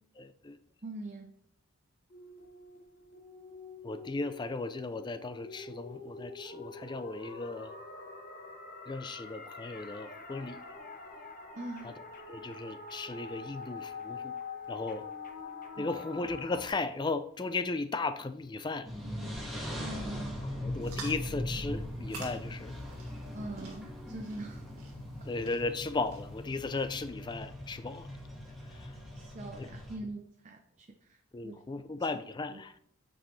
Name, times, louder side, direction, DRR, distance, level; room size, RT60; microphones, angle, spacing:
voice 1, 0.2-0.6 3.8-7.8 8.9-10.6 12.3-14.4 14.7-15.0 15.8-18.9 20.6-22.7 25.2-28.1 28.7-28.9 29.6-29.7 31.3-32.7, left 3 dB, 20° left, 0.3 m, -36 dB
voice 2, 0.8-1.3 11.6-11.9 15.8-15.9 19.7-20.4 23.3-24.6 29.1-31.5 32.5-32.6, right 2 dB, 35° right, 0.6 m, -43 dB
sound 1, 2.1-16.7, left 4 dB, 40° left, 1.2 m, -45 dB
sound 2, 18.8-30.0, left 1 dB, ahead, 1.5 m, -40 dB
sound 3, 20.8-27.1, right 3 dB, 90° right, 1.8 m, -49 dB
8.7 x 5.3 x 3.2 m
head